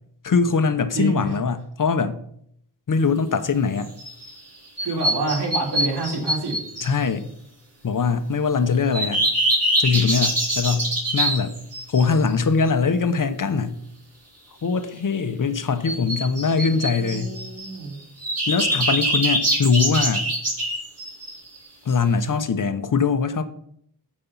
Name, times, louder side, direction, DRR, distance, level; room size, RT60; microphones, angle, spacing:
voice 1, 0.2-2.2 2.9-3.9 6.8-7.3 7.8-9.2 9.8-11.5 11.9-13.8 14.6-17.3 18.5-20.2 21.8-23.4, left 5 dB, 55° left, 10 dB, 1.1 m, -22 dB
voice 2, 0.9-1.4 4.8-6.6 16.9-18.0, right 3 dB, 85° right, -1 dB, 3.8 m, -27 dB
sound 1, 3.8-4.3 4.8-6.9 8.9-12.1 15.8-17.8 18.2-21.6, right 1 dB, 40° right, 5.3 m, -24 dB
15.0 x 5.5 x 5.7 m, 0.69 s
wide cardioid pair, 100°, 39 cm